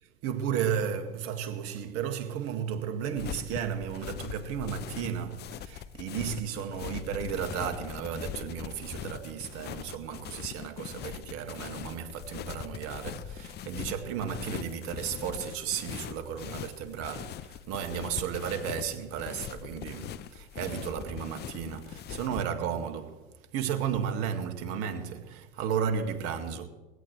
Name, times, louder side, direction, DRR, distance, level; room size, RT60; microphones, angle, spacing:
voice 1, 0.2-23.2 23.5-26.7, right 8 dB, 50° right, 2.0 m, -34 dB
sound 1, 3.2-22.4, left 11 dB, 35° left, 0.7 m, -41 dB
21.0 x 16.5 x 3.2 m
hypercardioid pair, 90°, 30 cm